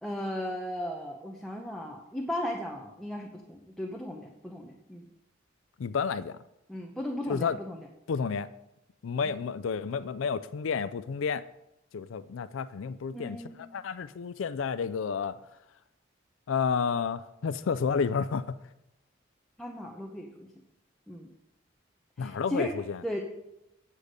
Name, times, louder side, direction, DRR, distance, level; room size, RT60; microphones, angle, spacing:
voice 1, 0.0-5.1 6.7-7.9 9.2-9.3 13.1-13.6 19.6-20.5 21.1-21.3 22.2-22.7 23.0-23.2, equal, ahead, 0 dB, 0.8 m, -36 dB
voice 2, 5.8-6.4 7.3-7.6 8.1-8.5 9.0-11.4 11.9-15.4 16.5-18.6 22.2-23.0, left 6 dB, 90° left, 13 dB, 0.4 m, -31 dB
8.3 x 8.3 x 5.1 m, 0.87 s
head